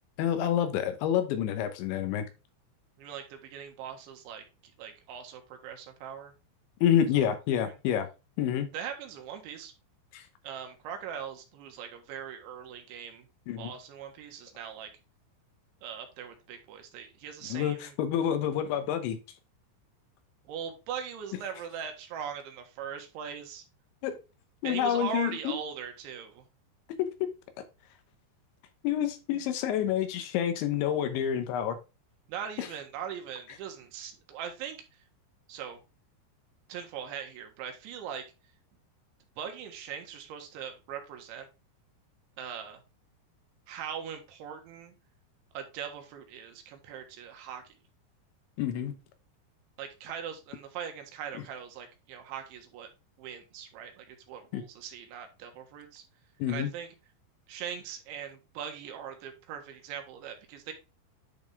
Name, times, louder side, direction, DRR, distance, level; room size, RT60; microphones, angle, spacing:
voice 1, 0.2-2.3 6.8-8.1 8.4-8.7 10.1-10.2 13.5-13.7 17.5-19.2 24.0-24.2 24.6-25.6 27.0-27.1 28.8-31.8 32.6-32.7 48.6-48.9 54.5-54.6 56.4-56.7, left 10 dB, 80° left, 9 dB, 3.2 m, -28 dB
voice 2, 3.0-4.4 4.8-6.3 7.1-7.2 7.6-7.8 8.7-9.7 10.4-13.3 13.6-14.9 15.8-18.0 20.5-23.7 24.6-26.4 32.3-34.8 35.5-35.8 36.7-38.2 39.4-41.5 42.4-42.8 43.7-44.9 45.6-47.6 49.8-52.9 53.2-56.0 56.5-56.9 57.5-60.7, right 8 dB, 80° right, 5 dB, 3.7 m, -40 dB
10.5 x 4.2 x 3.4 m, 0.28 s
omnidirectional pair, 5.4 m